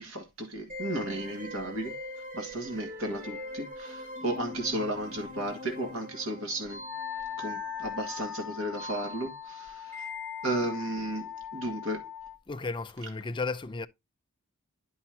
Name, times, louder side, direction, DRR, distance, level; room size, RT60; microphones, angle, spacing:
voice 1, 0.0-1.9 2.3-6.8 7.4-10.1 10.4-12.1, right 1 dB, 75° right, 1.9 m, -34 dB
sound 1, 0.7-10.9, left 1 dB, 40° right, 2.8 m, -43 dB
Wind instrument woodwind instrument, 6.8-12.4, left 9 dB, 5° right, 1.8 m, -40 dB
voice 2, 12.5-13.9, left 3 dB, 20° left, 0.5 m, -34 dB
10.5 x 5.7 x 2.8 m
head